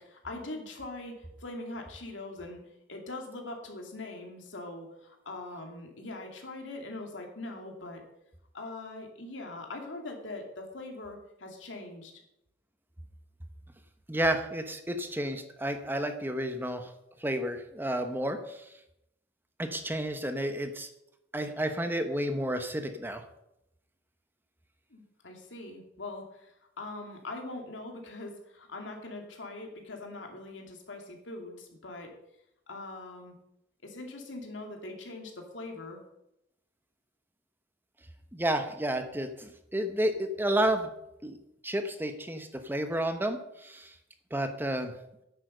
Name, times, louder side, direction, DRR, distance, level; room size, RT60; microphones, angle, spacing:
voice 1, 0.0-2.6 2.9-8.0 8.5-12.1 24.9-32.1 32.7-33.3 33.8-36.0, left 2 dB, 85° left, 2 dB, 2.6 m, -42 dB
voice 2, 14.1-16.9 17.2-18.7 19.6-20.9 21.3-23.2 38.3-40.9 41.2-41.4 41.6-43.9 44.3-44.9, right 1 dB, 10° right, 7 dB, 1.0 m, -31 dB
9.7 x 8.3 x 6.6 m, 0.82 s
head